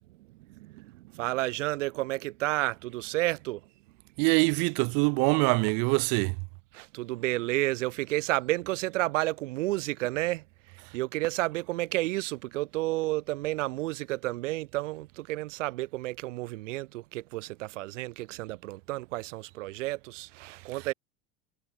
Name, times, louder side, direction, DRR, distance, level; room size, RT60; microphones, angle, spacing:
voice 1, 0.1-3.7 6.7-20.9, right 19 dB, 85° right, 1.5 m, -31 dB
voice 2, 4.2-6.3, right 40 dB or more, 45° right, 1.0 m, -24 dB
supercardioid pair, 170°, 36 cm